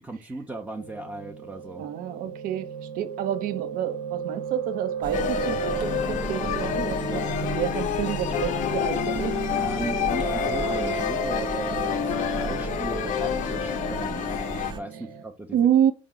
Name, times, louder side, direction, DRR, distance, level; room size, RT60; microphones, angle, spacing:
voice 1, 0.1-1.9 9.5-15.6, right 2 dB, 10° right, 0.7 m, -37 dB
Piano, 0.8-15.2, right 5 dB, 85° right, 1.0 m, -34 dB
voice 2, 1.8-2.7 2.9-7.2 7.6-9.3 15.5-15.9, right 10 dB, 65° right, 0.6 m, -28 dB
sound 1, 5.0-14.8, right 3 dB, 30° right, 0.9 m, -35 dB
sound 2, 5.1-14.7, left 12 dB, 55° left, 0.4 m, -29 dB
4.4 x 2.0 x 3.8 m
hypercardioid pair, 70°, 16 cm